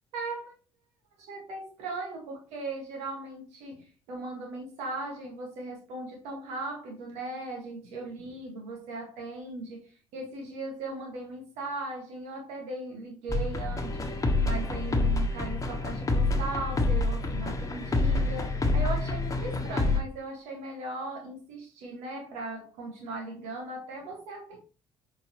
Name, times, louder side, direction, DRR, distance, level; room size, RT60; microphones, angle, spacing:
voice 1, 0.1-0.6 1.2-24.6, right 2 dB, 65° right, 1 dB, 1.8 m, -38 dB
sound 1, 13.3-20.0, left 2 dB, 25° left, 1.3 m, -27 dB
7.4 x 4.8 x 3.1 m, 0.36 s
figure-of-eight pair, 50°, 13 cm